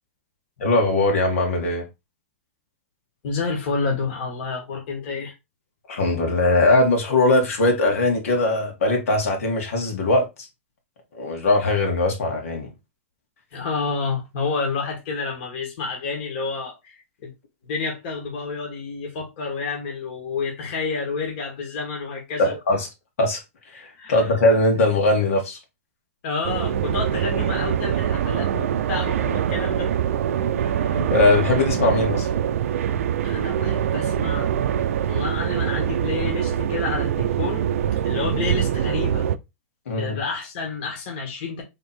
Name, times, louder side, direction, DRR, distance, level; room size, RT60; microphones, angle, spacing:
voice 1, 0.6-1.8 5.9-10.2 11.2-12.7 22.4-22.9 23.2-23.4 23.7-25.6 30.9-32.3 39.9-40.2, left 2 dB, 85° left, 2.0 m, -20 dB
voice 2, 3.2-5.3 13.5-17.3 17.6-22.5 24.0-24.3 26.2-29.9 30.8-31.1 33.2-34.5 35.1-37.6 38.0-39.3 39.9-41.6, left 4 dB, 45° left, 1.6 m, -29 dB
sound 1, 26.4-39.4, right 9 dB, 85° right, 0.5 m, -24 dB
3.6 x 3.5 x 4.3 m
supercardioid pair, 165°, 7 cm